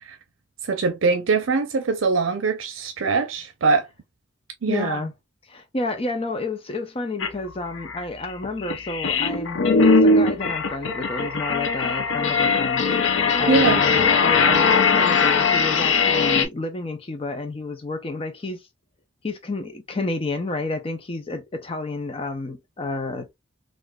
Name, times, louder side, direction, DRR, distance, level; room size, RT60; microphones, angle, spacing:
voice 1, 0.6-3.9 4.6-5.0 13.5-13.8, right 4 dB, 80° right, 0.5 m, -22 dB
voice 2, 4.7-5.1 5.5-12.9 13.4-18.6 19.2-23.3, left 2 dB, 30° left, 0.5 m, -30 dB
sound 1, 7.2-7.3 7.8-16.4, left 4 dB, 75° left, 0.6 m, -20 dB
3.7 x 2.5 x 2.2 m
head